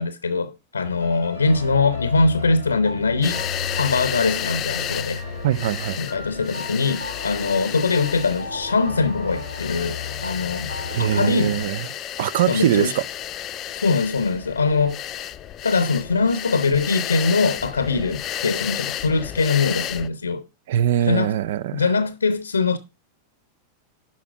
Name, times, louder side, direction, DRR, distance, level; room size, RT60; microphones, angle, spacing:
voice 1, 0.0-3.4 3.7-5.2 6.0-10.7 11.0-11.6 12.5-12.9 13.8-15.0 15.6-20.4 21.0-21.3 21.7-22.8, left 4 dB, 75° left, 0.7 m, -22 dB
sound 1, 0.8-11.6, left 4 dB, 85° right, 2.8 m, -34 dB
sound 2, 3.2-20.1, left 11 dB, 30° left, 0.6 m, -32 dB
voice 2, 5.4-6.0 10.9-11.9 12.2-13.0 20.7-21.8, right 11 dB, 55° right, 0.4 m, -22 dB
11.0 x 5.9 x 4.6 m
figure-of-eight pair, 90°, 0 cm